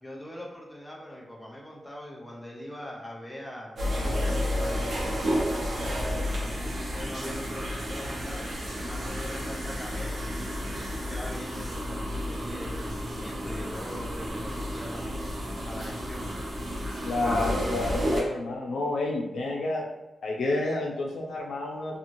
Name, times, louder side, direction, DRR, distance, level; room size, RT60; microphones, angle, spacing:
voice 1, 0.0-3.8 4.6-10.2 10.7-15.1 15.7-16.3, left 1 dB, 10° left, -3 dB, 0.5 m, -42 dB
sound 1, 3.8-18.2, equal, 50° right, 0.7 m, -31 dB
voice 2, 17.0-19.8 20.2-22.0, left 2 dB, 90° left, -2 dB, 0.6 m, -29 dB
2.6 x 2.4 x 3.0 m, 1.0 s
wide cardioid pair, 165°, 0 cm